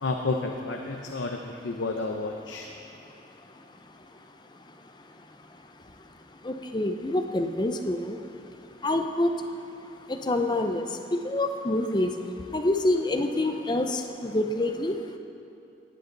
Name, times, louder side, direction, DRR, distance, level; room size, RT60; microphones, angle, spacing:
voice 1, 0.0-2.7, left 3 dB, 85° left, 2 dB, 0.7 m, -31 dB
voice 2, 6.4-8.2 8.8-9.3 10.1-10.8 11.1-12.1 12.5-15.0, left 1 dB, 25° left, 6 dB, 0.6 m, -26 dB
17.5 x 9.3 x 4.0 m, 2.7 s
head